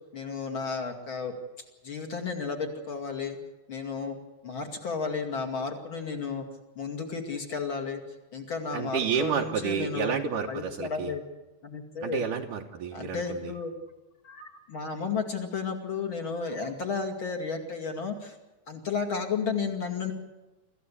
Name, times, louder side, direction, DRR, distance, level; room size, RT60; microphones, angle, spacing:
voice 1, 0.1-1.3 1.8-3.4 3.7-4.2 4.4-6.4 6.8-8.0 8.3-10.1 10.5-11.2 11.6-12.3 12.9-13.7 14.2-18.4 18.7-20.1, left 5 dB, 40° left, 2 dB, 2.8 m, -33 dB
voice 2, 8.7-11.1 12.0-13.5, right 7 dB, 70° right, 0 dB, 2.4 m, -30 dB
26.0 x 15.0 x 8.5 m, 1.1 s
omnidirectional pair, 4.2 m